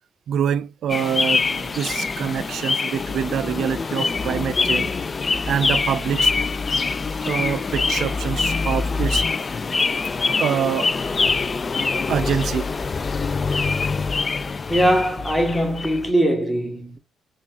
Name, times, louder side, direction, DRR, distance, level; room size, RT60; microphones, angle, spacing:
voice 1, 0.3-4.9 5.5-6.3 7.3-9.2 10.4-10.9 12.1-12.7, right 8 dB, 70° right, 0.3 m, -25 dB
sound 1, 0.9-16.1, left 4 dB, 35° left, 0.3 m, -24 dB
voice 2, 14.7-17.0, right 1 dB, ahead, 1.2 m, -21 dB
4.2 x 2.4 x 2.7 m
cardioid pair, 90°, 0 cm